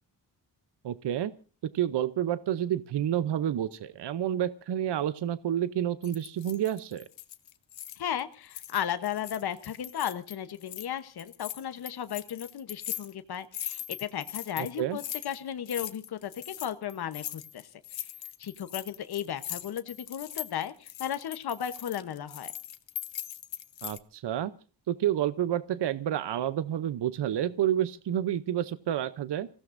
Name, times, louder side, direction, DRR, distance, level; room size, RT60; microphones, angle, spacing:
voice 1, 0.8-1.3 1.7-7.1 14.8-15.0 23.8-24.5 24.9-29.5, right 11 dB, 70° right, 14 dB, 0.7 m, -29 dB
sound 1, 6.0-8.2 8.5-10.9 11.2-24.0, left 11 dB, 90° left, 1.0 m, -40 dB
voice 2, 8.0-18.1 18.4-22.5, left 9 dB, 60° left, 10 dB, 1.0 m, -35 dB
29.5 x 16.0 x 2.6 m, 0.36 s
wide cardioid pair, 175°, 43 cm